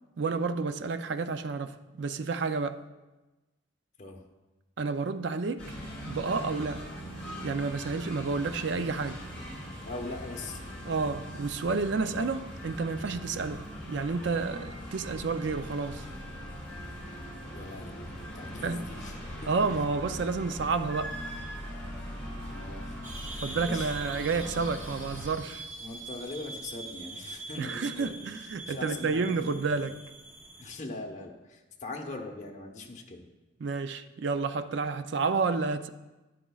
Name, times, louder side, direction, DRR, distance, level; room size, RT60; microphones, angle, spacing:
voice 1, 0.2-2.8 4.8-5.7 6.0-6.9 7.4-9.2 10.8-16.0 18.6-18.9 19.5-21.2 23.4-25.6 27.6-30.0 33.6-35.9, right 4 dB, 60° right, 0.4 m, -30 dB
sound 1, 5.6-25.3, equal, 5° left, 2.6 m, -41 dB
voice 2, 9.8-10.6 17.5-19.8 22.5-23.0 23.5-24.0 25.8-29.8 30.6-33.2, left 2 dB, 35° left, 1.0 m, -41 dB
sound 2, 23.0-30.7, right 2 dB, 10° right, 0.8 m, -44 dB
11.0 x 10.0 x 2.4 m
head